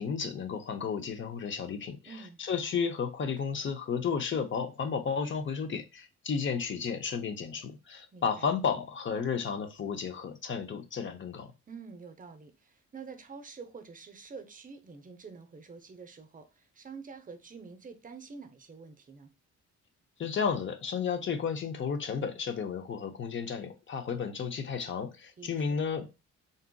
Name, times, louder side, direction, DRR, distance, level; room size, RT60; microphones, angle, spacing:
voice 1, 0.0-2.0 2.4-11.5 20.2-26.1, left 6 dB, 40° left, 0.6 m, -33 dB
voice 2, 2.0-2.4 8.1-8.5 11.7-19.3 25.4-25.9, right 5 dB, 25° right, 0.6 m, -47 dB
3.9 x 2.4 x 2.2 m
cardioid pair, 90°, 30 cm